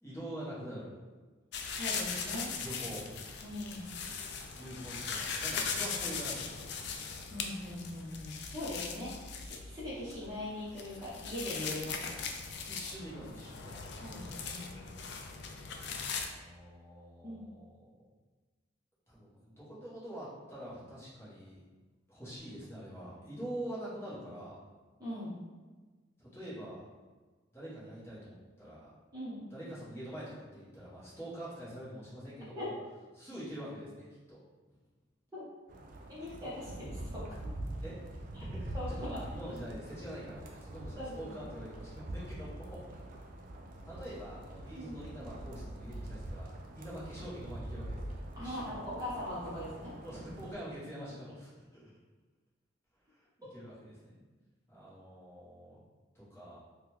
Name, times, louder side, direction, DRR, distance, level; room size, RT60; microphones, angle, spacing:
voice 1, 0.0-0.9 2.6-3.0 4.5-6.5 12.7-13.8 16.3-17.9 19.1-21.6 22.1-24.6 26.2-26.9 27.5-28.9 29.5-32.7 33.1-34.4 37.8-38.0 38.4-43.0 43.8-46.5 46.7-48.8 50.0-51.9 53.1-54.2 54.7-55.8 56.1-56.6, right 1 dB, 15° left, -10 dB, 1.0 m, -45 dB
sound 1, 1.5-16.3, left 5 dB, 55° left, 0.3 m, -39 dB
voice 2, 1.8-2.5 3.4-3.9 7.3-12.2 14.0-14.6 17.2-17.5 25.0-25.4 29.1-29.4 32.5-32.7 35.3-35.4 36.1-37.3 38.3-38.4 38.7-39.2 41.0-41.3 44.7-45.1 48.4-50.0, left 1 dB, 20° right, -10 dB, 0.7 m, -41 dB
sound 2, 35.7-50.5, right 1 dB, 45° right, 0.3 m, -44 dB
3.5 x 2.2 x 3.0 m, 1.3 s
head